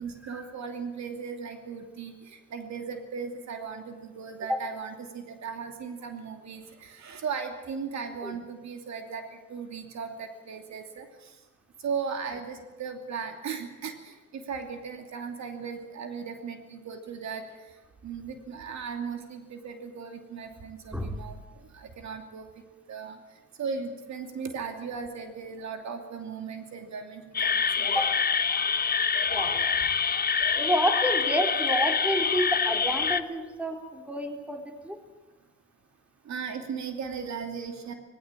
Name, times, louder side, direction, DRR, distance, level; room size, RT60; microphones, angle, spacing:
voice 1, 0.0-9.2 9.5-11.1 11.8-17.4 18.0-21.4 21.7-22.5 22.9-23.2 23.6-28.1 36.3-37.9, right 6 dB, 65° right, 6 dB, 2.8 m, -37 dB
voice 2, 20.9-21.2 27.9-28.1 29.2-29.7 30.5-35.0, equal, 5° right, 4 dB, 3.7 m, -29 dB
sound 1, 27.3-33.2, left 6 dB, 30° left, 0.9 m, -26 dB
19.5 x 16.5 x 8.9 m, 1.2 s
cardioid pair, 90°, 30 cm